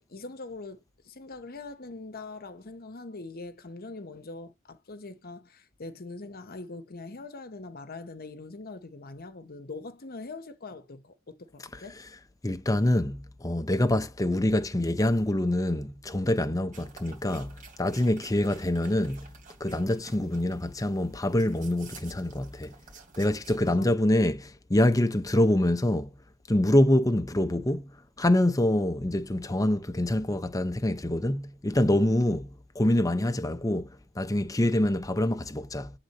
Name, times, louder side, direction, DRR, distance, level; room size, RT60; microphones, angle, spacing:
voice 1, 0.1-12.0 23.6-23.9, left 3 dB, 45° left, 0.9 m, -42 dB
voice 2, 12.4-19.3 19.6-22.7 23.2-26.1 26.5-27.9 28.2-32.5 32.7-35.9, left 1 dB, 15° left, 0.7 m, -25 dB
sound 1, 16.7-23.7, right 4 dB, 40° right, 3.0 m, -52 dB
8.0 x 3.8 x 4.1 m
head